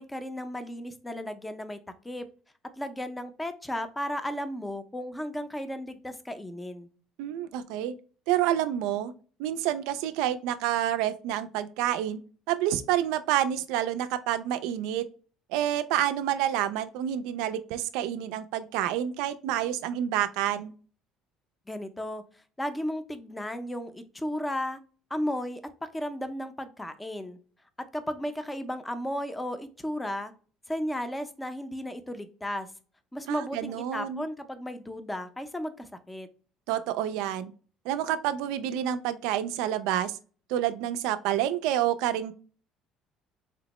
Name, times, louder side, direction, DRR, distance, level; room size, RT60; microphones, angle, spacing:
voice 1, 0.0-1.8 2.0-2.3 2.8-6.9 21.7-22.2 22.6-24.8 25.1-27.4 27.9-30.3 30.7-32.7 33.1-36.3, left 1 dB, 10° left, 9 dB, 0.5 m, -34 dB
voice 2, 7.2-7.9 8.3-9.1 9.4-12.2 12.5-15.0 15.5-20.7 33.3-34.2 36.7-37.5 37.9-40.1 40.5-42.3, right 11 dB, 80° right, 11 dB, 0.3 m, -28 dB
4.3 x 2.0 x 2.9 m, 0.39 s
supercardioid pair, 95°, 0 cm